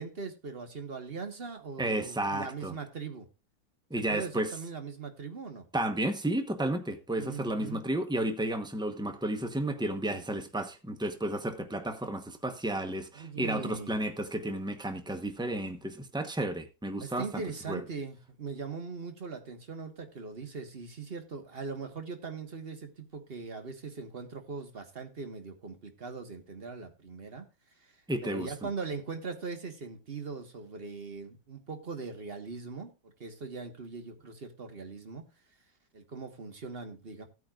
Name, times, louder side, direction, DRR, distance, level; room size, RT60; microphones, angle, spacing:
voice 1, 0.0-3.3 3.9-5.6 7.2-7.8 13.1-14.0 17.0-27.5 27.8-27.9 28.2-35.3 35.9-37.2, right 4 dB, 30° right, 1.5 m, -40 dB
voice 2, 1.8-2.8 3.9-4.5 5.7-17.4 17.7-17.8 28.1-28.5, right 1 dB, 5° right, 0.4 m, -32 dB
17.0 x 9.1 x 2.5 m
omnidirectional pair, 2.2 m